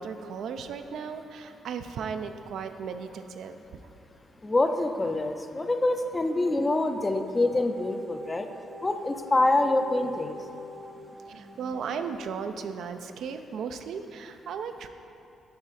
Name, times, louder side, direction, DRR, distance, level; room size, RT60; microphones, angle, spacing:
voice 1, 0.0-3.6 11.3-14.9, right 6 dB, 70° right, 8 dB, 0.4 m, -36 dB
voice 2, 4.4-8.5 8.8-10.4, left 2 dB, 20° left, 7 dB, 0.4 m, -25 dB
sound 1, 6.1-12.2, left 2 dB, 85° right, 1.6 m, -47 dB
9.6 x 4.4 x 4.1 m, 2.7 s
cardioid pair, 105°, 0 cm